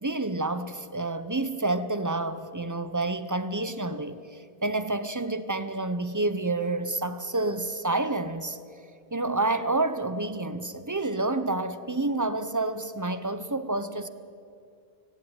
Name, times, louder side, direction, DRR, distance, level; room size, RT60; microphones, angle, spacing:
voice 1, 0.0-8.6 9.1-14.1, right 2 dB, 20° right, 0.8 m, -29 dB
17.0 x 17.0 x 9.0 m
omnidirectional pair, 1.0 m